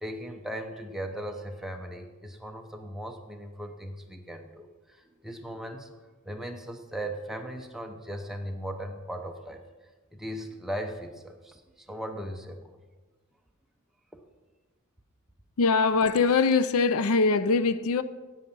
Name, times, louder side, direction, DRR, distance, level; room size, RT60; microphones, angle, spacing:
voice 1, 0.0-6.0 6.2-9.6 10.1-12.7, right 1 dB, ahead, 0.7 m, -38 dB
voice 2, 15.6-18.0, left 4 dB, 80° left, 0.5 m, -22 dB
10.0 x 9.2 x 5.4 m
head